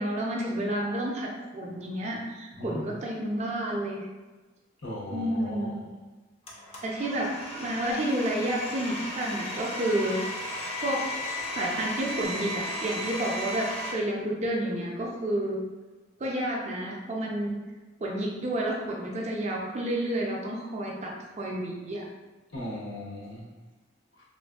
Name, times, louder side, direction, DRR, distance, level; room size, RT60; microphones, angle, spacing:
voice 1, 0.0-4.0 5.1-5.8 6.8-10.2 10.8-15.6 16.2-17.6 18.0-22.1, right 1 dB, 35° right, -2 dB, 0.4 m, -30 dB
voice 2, 4.8-5.7 22.5-23.4, left 1 dB, 70° left, -5 dB, 0.8 m, -37 dB
Domestic sounds home sounds, 6.5-13.9, left 1 dB, 30° left, 0.4 m, -35 dB
2.9 x 2.5 x 2.3 m, 1.2 s
head